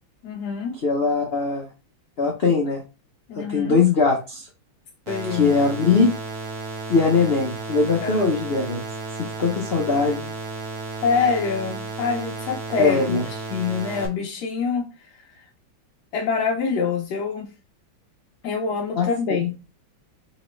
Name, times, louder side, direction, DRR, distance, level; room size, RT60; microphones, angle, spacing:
voice 1, 0.2-0.8 3.3-3.8 5.1-5.5 8.0-8.3 11.0-14.9 16.1-17.5 18.4-19.5, left 5 dB, 70° left, 1.0 m, -25 dB
voice 2, 0.8-1.7 2.2-2.8 3.4-4.5 5.3-6.1 6.9-8.8 9.2-10.3 12.8-13.2 19.0-19.1 19.4-19.5, left 4 dB, 85° left, 0.5 m, -21 dB
sound 1, 5.1-14.1, right 3 dB, 50° right, 1.1 m, -33 dB
4.1 x 3.1 x 3.0 m
omnidirectional pair, 2.2 m